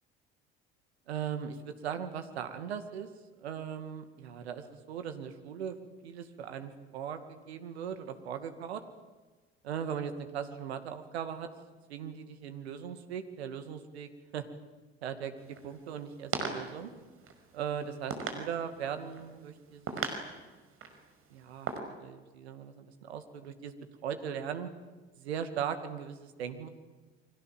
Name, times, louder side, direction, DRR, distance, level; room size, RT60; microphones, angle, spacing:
voice 1, 1.1-3.1 3.4-5.8 6.0-8.8 9.6-11.5 11.9-14.5 15.0-16.9 17.5-20.2 21.3-21.7 22.0-23.8 24.0-24.7 25.1-26.7, right 8 dB, 70° right, 9 dB, 2.3 m, -39 dB
sound 1, 15.4-21.8, right 5 dB, 40° right, 5.4 m, -40 dB
29.5 x 24.5 x 7.5 m, 1.3 s
figure-of-eight pair, 60°, 33 cm